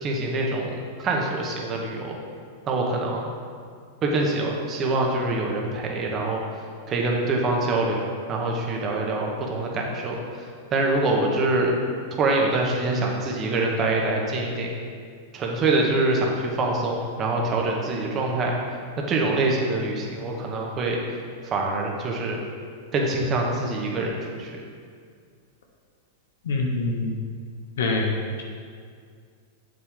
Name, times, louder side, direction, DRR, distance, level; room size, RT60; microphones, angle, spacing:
voice 1, 0.0-0.7 1.0-2.2 2.7-3.3 4.0-6.4 6.9-10.2 10.7-11.7 12.2-14.7 15.3-18.5 19.1-21.0 21.4-22.4 22.9-24.5, right 2 dB, 30° right, -1 dB, 1.6 m, -25 dB
voice 2, 26.5-27.1 27.8-28.1, left 3 dB, 75° left, 0 dB, 1.2 m, -24 dB
8.0 x 7.9 x 3.8 m, 2.1 s
hypercardioid pair, 105°, 0 cm